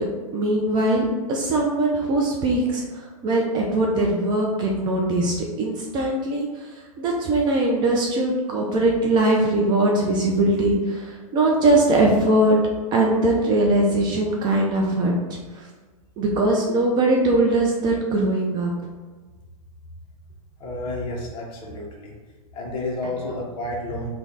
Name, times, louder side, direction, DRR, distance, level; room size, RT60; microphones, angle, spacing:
voice 1, 0.3-2.8 3.2-6.7 7.0-12.6 12.9-15.6 16.2-18.7, right 2 dB, 25° right, -1 dB, 0.4 m, -21 dB
voice 2, 20.6-22.1 22.5-24.1, left 1 dB, 25° left, -1 dB, 0.8 m, -30 dB
3.2 x 2.3 x 3.8 m, 1.4 s
hypercardioid pair, 135°, 19 cm